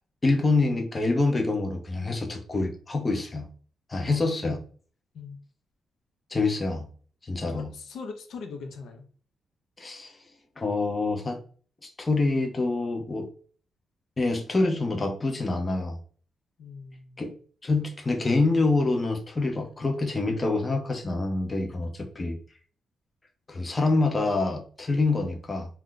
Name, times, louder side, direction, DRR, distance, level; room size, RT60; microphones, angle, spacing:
voice 1, 0.2-3.5 3.9-4.6 6.3-6.9 7.2-7.7 9.8-10.1 10.6-11.4 11.8-13.3 14.2-16.0 17.2-17.3 17.6-22.4 23.5-25.7, left 3 dB, 20° left, 3 dB, 0.5 m, -26 dB
voice 2, 7.5-9.0 16.6-17.2, left 5 dB, 75° left, 5 dB, 0.5 m, -41 dB
2.5 x 2.2 x 3.6 m, 0.43 s
cardioid pair, 145°, 0 cm